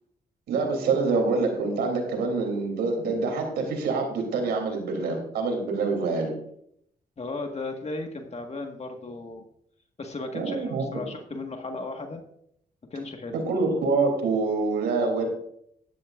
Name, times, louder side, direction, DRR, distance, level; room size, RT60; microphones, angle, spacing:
voice 1, 0.5-6.3 10.3-11.0 13.3-15.3, right 3 dB, 90° right, 2 dB, 3.2 m, -26 dB
voice 2, 7.2-9.5 10.0-12.2 12.9-13.4, left 3 dB, 40° left, 3 dB, 1.7 m, -35 dB
13.0 x 11.5 x 2.5 m, 0.70 s
cardioid pair, 60°, 17 cm